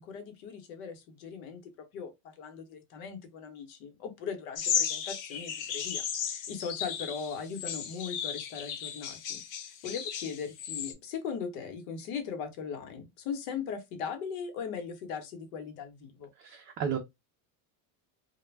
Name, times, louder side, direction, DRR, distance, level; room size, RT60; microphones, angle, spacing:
voice 1, 0.0-6.0 6.3-9.4 9.8-16.3, left 6 dB, 80° left, 1.0 m, -39 dB
sound 1, 4.6-10.9, left 7 dB, 45° left, 0.6 m, -35 dB
voice 2, 16.4-17.0, right 7 dB, 30° right, 0.4 m, -32 dB
2.2 x 2.1 x 3.2 m
supercardioid pair, 125°, 43 cm